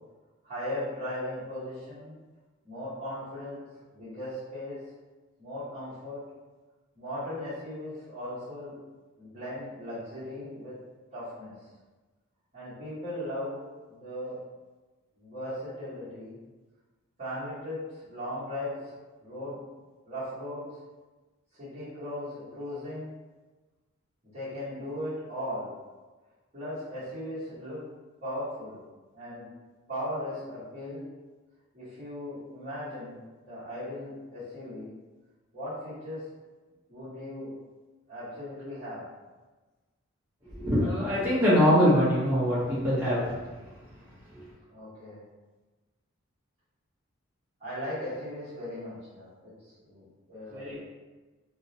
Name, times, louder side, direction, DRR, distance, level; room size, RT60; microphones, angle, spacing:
voice 1, 0.4-2.1 2.6-3.6 3.9-4.8 5.4-6.2 6.9-8.7 9.2-10.7 11.1-11.5 12.5-13.6 13.9-14.4 15.2-16.4 17.2-18.9 19.2-19.6 20.0-20.6 21.5-23.1 24.3-25.7 26.5-27.8 28.2-28.8 29.1-29.4 29.9-31.0 31.7-33.2 33.5-34.9 35.5-36.2 36.9-37.5 38.1-39.0 44.7-45.2 47.6-50.8, left 1 dB, 30° right, -12 dB, 1.1 m, -37 dB
voice 2, 40.6-43.4 50.5-50.8, equal, 10° right, -12 dB, 0.8 m, -23 dB
2.5 x 2.0 x 2.7 m, 1.2 s
head